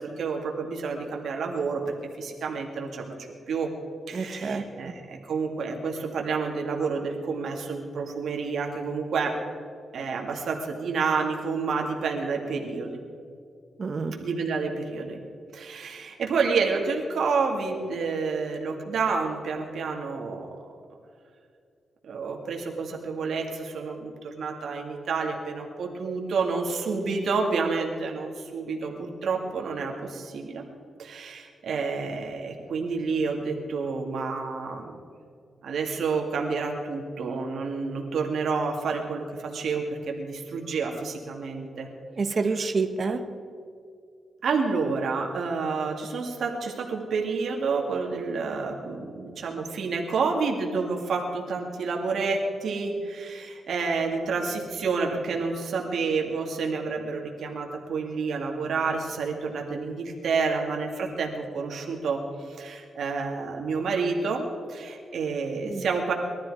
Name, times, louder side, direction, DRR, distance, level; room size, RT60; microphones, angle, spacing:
voice 1, 0.0-3.7 4.1-9.3 9.9-12.9 14.2-15.2 15.5-20.5 22.1-24.1 24.4-30.6 31.0-35.0 35.6-41.9 44.4-66.1, right 4 dB, 70° right, 1 dB, 2.2 m, -29 dB
voice 2, 4.1-4.9 13.8-14.1 42.2-43.2 65.6-65.8, right 4 dB, 40° right, 7 dB, 1.3 m, -28 dB
21.5 x 13.0 x 4.9 m, 2.4 s
cardioid pair, 115°, 0 cm